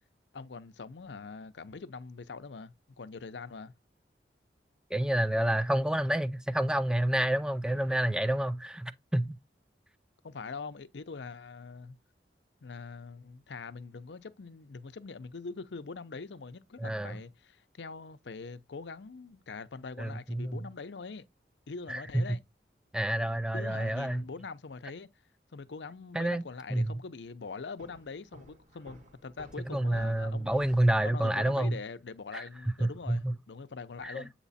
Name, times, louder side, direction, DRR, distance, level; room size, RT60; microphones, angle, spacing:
voice 1, 0.3-3.7 10.2-12.0 12.6-21.3 21.7-22.4 23.5-25.1 25.5-30.6 31.0-34.3, left 4 dB, 85° left, 0.6 m, -43 dB
voice 2, 4.9-9.4 16.8-17.2 20.0-20.6 21.9-22.3 22.9-24.2 26.1-27.0 29.7-31.8 32.3-32.4 32.8-33.3 34.0-34.3, right 1 dB, 5° right, 0.4 m, -29 dB
Walk footsteps, 27.8-31.1, left 1 dB, 45° right, 1.6 m, -53 dB
8.2 x 2.9 x 4.1 m
head